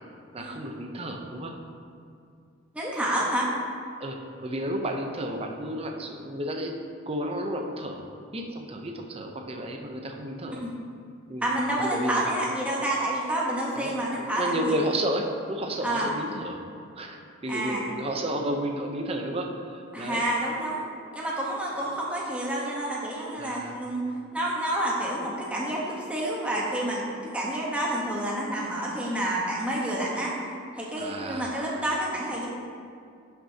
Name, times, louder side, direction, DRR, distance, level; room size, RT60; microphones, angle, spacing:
voice 1, 0.3-1.6 4.0-6.8 7.1-8.0 8.3-10.6 11.3-12.2 13.7-13.9 14.4-16.6 17.0-20.2 23.4-23.8 30.9-31.5, right 1 dB, 30° right, 3 dB, 0.6 m, -32 dB
voice 2, 2.7-3.5 10.5-10.7 11.4-14.7 15.8-16.1 17.5-17.8 19.9-20.8 21.1-24.0 24.3-27.0 27.3-30.3 30.7-32.5, right 1 dB, 5° right, -5 dB, 1.0 m, -29 dB
11.0 x 6.0 x 2.8 m, 2.3 s
head